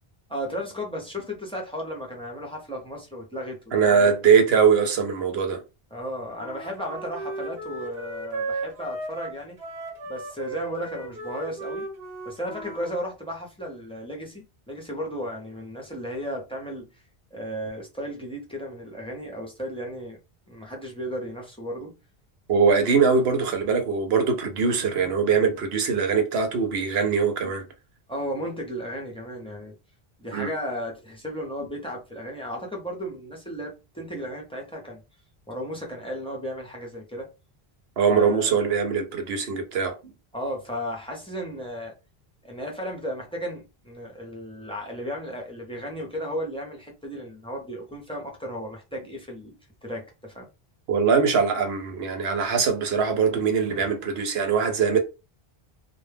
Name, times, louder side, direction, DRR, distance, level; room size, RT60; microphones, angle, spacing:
voice 1, 0.3-4.1 5.9-9.6 10.1-11.9 12.3-17.0 17.3-20.2 20.5-21.9 28.1-29.7 30.2-35.0 35.5-37.3 38.1-38.5 40.3-41.9 42.4-49.6 49.8-50.5 53.7-53.9, equal, 5° left, 0.5 m, -34 dB
voice 2, 3.7-5.6 22.5-27.7 30.3-30.5 38.0-40.0 50.9-55.0, right 6 dB, 85° right, 0.9 m, -22 dB
Wind instrument woodwind instrument, 6.4-12.9, right 3 dB, 65° right, 1.0 m, -35 dB
2.2 x 2.1 x 3.2 m
omnidirectional pair, 1.0 m